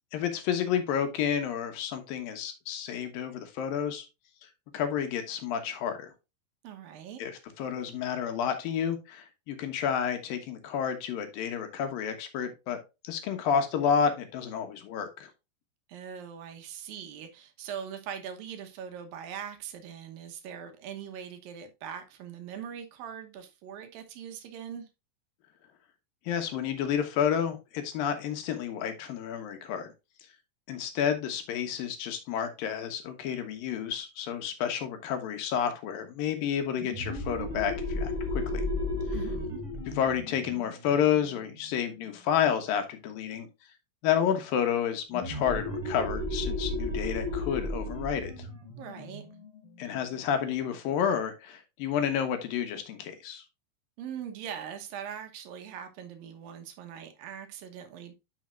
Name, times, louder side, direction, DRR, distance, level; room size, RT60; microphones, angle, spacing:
voice 1, 0.1-4.1 4.7-6.1 7.2-12.8 13.0-15.3 26.3-29.9 30.7-38.6 39.9-43.5 44.0-48.5 49.8-53.4, left 8 dB, 80° left, 3.0 m, -30 dB
voice 2, 6.6-7.2 15.9-24.9 39.1-39.6 48.8-49.3 54.0-58.2, right 8 dB, 85° right, 2.9 m, -41 dB
sound 1, 36.8-42.1 45.1-50.4, left 2 dB, 10° right, 1.7 m, -34 dB
10.5 x 5.6 x 2.5 m
omnidirectional pair, 4.0 m